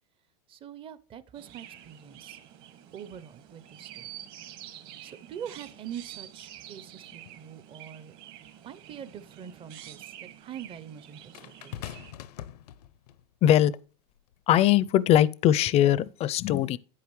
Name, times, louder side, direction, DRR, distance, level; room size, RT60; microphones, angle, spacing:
voice 1, 0.5-2.4 2.9-4.1 5.0-8.1 8.6-12.0, right 9 dB, 25° right, 0.6 m, -44 dB
Chirp tweet, 1.3-12.1, right 12 dB, 50° right, 1.7 m, -48 dB
sound 1, 8.4-8.5 11.3-13.2 14.2-14.4, left 12 dB, 85° left, 0.7 m, -42 dB
voice 2, 13.4-13.8 14.5-16.8, left 12 dB, 30° left, 0.5 m, -21 dB
10.0 x 8.5 x 3.1 m
supercardioid pair, 130°, 20 cm